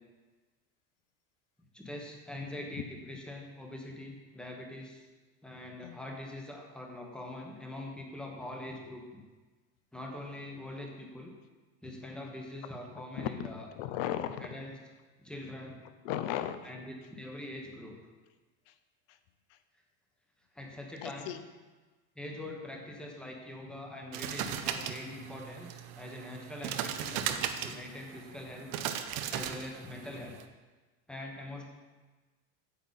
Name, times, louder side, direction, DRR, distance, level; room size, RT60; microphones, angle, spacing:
voice 1, 1.7-5.1 5.4-9.2 9.9-11.3 11.8-13.7 14.4-14.7 15.2-15.8 16.6-18.0 20.5-21.4 22.1-28.7 29.3-30.3 31.1-31.7, left 1 dB, 5° left, 0 dB, 1.0 m, -43 dB
voice 2, 13.2-14.5 16.0-16.7 18.7-18.8 19.1-19.2 19.5-19.6 21.0-21.4 24.7-24.9, left 11 dB, 60° left, 11 dB, 0.7 m, -36 dB
sound 1, 24.1-30.4, right 9 dB, 55° right, 0.7 m, -37 dB
8.8 x 7.9 x 4.1 m, 1.3 s
cardioid pair, 160°, 33 cm